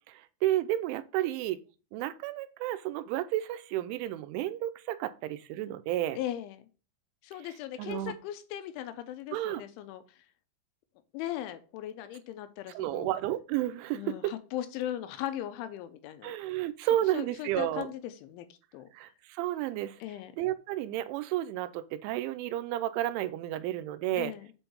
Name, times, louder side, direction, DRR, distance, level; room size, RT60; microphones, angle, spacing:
voice 1, 0.4-1.6 1.9-6.2 7.8-8.1 9.3-9.6 12.8-14.3 16.2-17.9 19.0-20.0 20.4-24.3, right 14 dB, 85° right, 3.0 m, -31 dB
voice 2, 6.2-6.7 7.2-10.2 11.1-13.2 13.9-16.3 17.1-18.9 20.0-20.3 24.1-24.5, left 12 dB, 85° left, 3.1 m, -38 dB
7.7 x 4.5 x 5.4 m
omnidirectional pair, 5.5 m